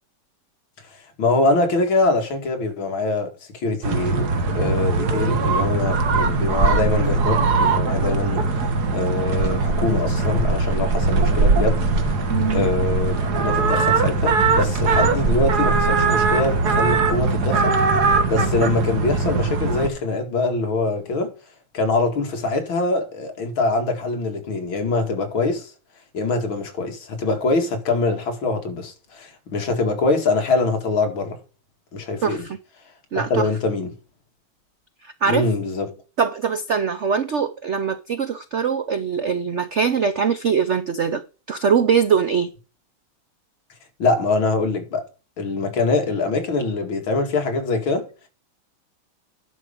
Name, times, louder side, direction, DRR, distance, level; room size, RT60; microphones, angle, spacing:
voice 1, 1.2-8.7 8.9-11.8 12.5-21.3 21.7-25.7 26.1-31.4 31.9-32.5 33.2-33.9 35.3-35.9 44.0-45.1 45.4-48.1, left 3 dB, 65° left, 2.9 m, -23 dB
sound 1, 3.8-19.9, right 3 dB, 50° right, 1.8 m, -20 dB
voice 2, 12.3-12.7 32.2-32.4 33.1-33.5 35.0-35.5 36.2-41.2 41.5-42.5, right 6 dB, 85° right, 0.6 m, -22 dB
11.0 x 5.5 x 5.0 m
omnidirectional pair, 2.3 m